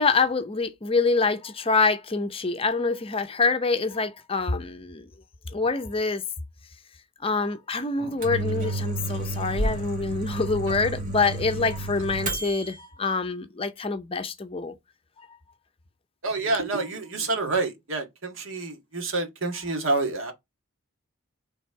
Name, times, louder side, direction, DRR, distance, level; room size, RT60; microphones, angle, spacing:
voice 1, 0.0-5.1 5.5-6.2 7.2-14.7 15.2-15.4, left 4 dB, 25° left, 0.6 m, -26 dB
Microwave oven, 8.0-12.8, right 1 dB, 40° right, 1.9 m, -31 dB
voice 2, 16.2-20.3, right 3 dB, 70° right, 1.8 m, -28 dB
6.1 x 3.4 x 4.6 m
head